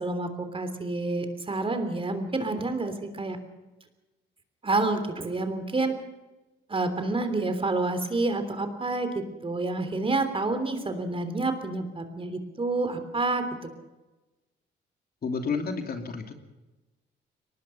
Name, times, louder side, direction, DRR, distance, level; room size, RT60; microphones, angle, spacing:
voice 1, 0.0-3.4 4.6-6.0 6.7-13.7, right 2 dB, 25° right, 8 dB, 3.3 m, -28 dB
voice 2, 15.2-16.3, left 5 dB, 50° left, 5 dB, 2.9 m, -30 dB
23.0 x 19.5 x 5.8 m, 1.1 s
cardioid pair, 90°, 20 cm